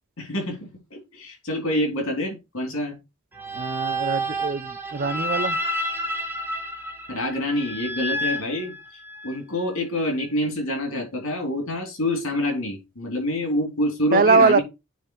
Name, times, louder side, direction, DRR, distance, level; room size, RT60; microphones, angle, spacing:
voice 1, 0.2-3.0 7.1-8.7 9.2-14.6, left 1 dB, 70° left, 3.4 m, -26 dB
sound 1, 3.3-9.4, right 1 dB, 10° right, 1.4 m, -30 dB
voice 2, 3.5-5.6 14.1-14.6, right 4 dB, 40° right, 0.5 m, -21 dB
9.2 x 3.8 x 4.6 m
head